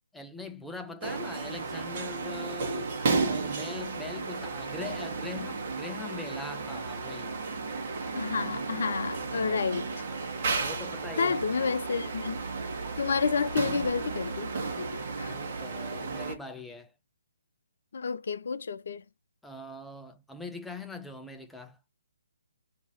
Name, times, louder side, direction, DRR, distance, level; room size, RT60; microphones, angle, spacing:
voice 1, 0.1-3.0 3.2-7.3 9.3-9.7 10.6-11.4 11.8-11.9 15.2-16.9 19.4-21.8, left 3 dB, 5° left, 0.5 m, -42 dB
sound 1, 1.0-16.3, right 4 dB, 45° right, 1.2 m, -33 dB
voice 2, 8.1-9.9 11.2-12.4 13.0-15.3 17.9-19.0, left 5 dB, 60° left, 0.5 m, -30 dB
2.8 x 2.7 x 4.2 m
figure-of-eight pair, 140°, 0 cm